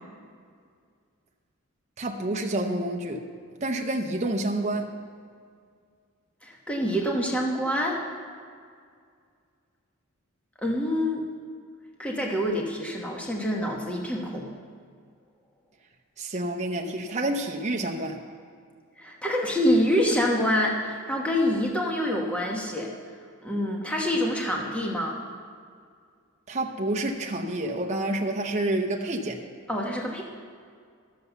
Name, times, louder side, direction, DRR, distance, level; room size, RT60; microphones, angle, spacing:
voice 1, 2.0-3.3 3.6-4.9 16.2-18.2 26.5-29.4, right 1 dB, 30° right, 2 dB, 0.8 m, -28 dB
voice 2, 6.4-8.0 10.6-11.2 12.0-14.5 19.0-22.9 23.4-25.2 29.7-30.2, equal, 5° left, -1 dB, 1.2 m, -26 dB
12.5 x 7.7 x 6.9 m, 2.2 s
head